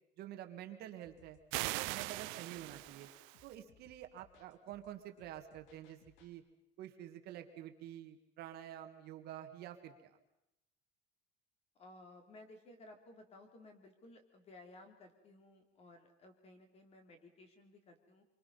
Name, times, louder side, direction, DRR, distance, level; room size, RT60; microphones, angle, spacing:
voice 1, 0.2-1.4 1.7-3.1 3.4-6.4 6.8-10.2, right 11 dB, 55° right, 6 dB, 1.8 m, -49 dB
sound 1, 1.0-6.3, left 7 dB, 80° left, 2.8 m, -68 dB
sound 2, 1.5-3.5, right 21 dB, 85° right, 0.7 m, -41 dB
voice 2, 11.8-18.2, left 2 dB, 30° left, 5 dB, 3.1 m, -57 dB
26.5 x 24.0 x 5.6 m, 0.87 s
cardioid pair, 170°, 20 cm